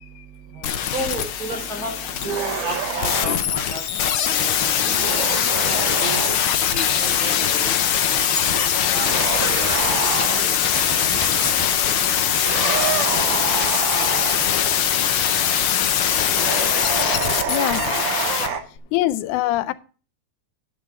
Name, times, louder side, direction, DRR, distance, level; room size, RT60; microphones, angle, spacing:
voice 1, 0.5-2.0 2.2-5.0 6.0-6.2 6.7-7.8 8.1-10.0 10.4-10.5 10.8-11.0 11.4-11.6 12.8-13.2 14.0-14.4 17.0-17.9, right 2 dB, 30° right, 4.9 m, -34 dB
sound 1, 0.6-18.5 18.8-18.9, left 9 dB, 65° left, 1.3 m, -21 dB
sound 2, 2.2-3.4 4.8-6.4 8.9-10.6 12.4-14.5 16.3-18.6, right 7 dB, 60° right, 1.3 m, -27 dB
Rubbing clothes fabric, 6.4-7.4 7.8-8.7 9.1-9.9 10.6-11.8 12.3-13.0 13.6-14.6 15.3-16.5, left 1 dB, 10° left, 2.3 m, -33 dB
voice 2, 17.5-17.8 18.9-19.7, left 15 dB, 90° left, 2.1 m, -23 dB
11.0 x 9.0 x 3.6 m
omnidirectional pair, 3.4 m